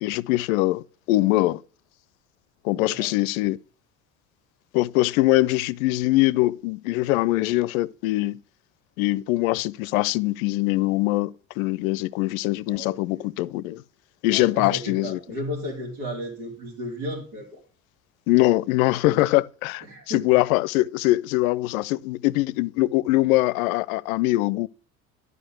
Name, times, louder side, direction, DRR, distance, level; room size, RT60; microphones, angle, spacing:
voice 1, 0.0-1.6 2.6-3.6 4.7-8.4 9.0-13.8 14.2-15.2 18.3-24.7, left 18 dB, 75° left, 0.5 m, -22 dB
voice 2, 2.7-3.1 12.7-13.3 14.3-17.6 19.8-20.4, equal, 70° right, 3.3 m, -34 dB
11.5 x 5.0 x 6.4 m
hypercardioid pair, 65°, 42 cm